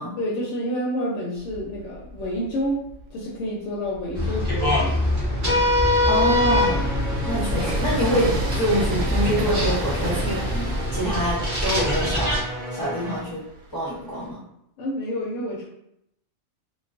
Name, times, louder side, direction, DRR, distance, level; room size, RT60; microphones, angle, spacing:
voice 1, 0.2-2.8 3.1-5.1 14.8-15.7, equal, 65° left, -4 dB, 0.8 m, -29 dB
Train, 1.4-3.1 3.7-14.3, right 1 dB, 90° right, 1.1 m, -35 dB
sound 1, 4.1-12.4, left 1 dB, 20° right, 0.6 m, -23 dB
voice 2, 6.0-7.0 7.2-12.4 12.7-13.4 13.7-14.4, equal, 25° left, -8 dB, 0.5 m, -26 dB
sound 2, 6.3-13.2, left 1 dB, 65° right, 0.9 m, -34 dB
2.3 x 2.3 x 2.4 m, 0.77 s
omnidirectional pair, 1.5 m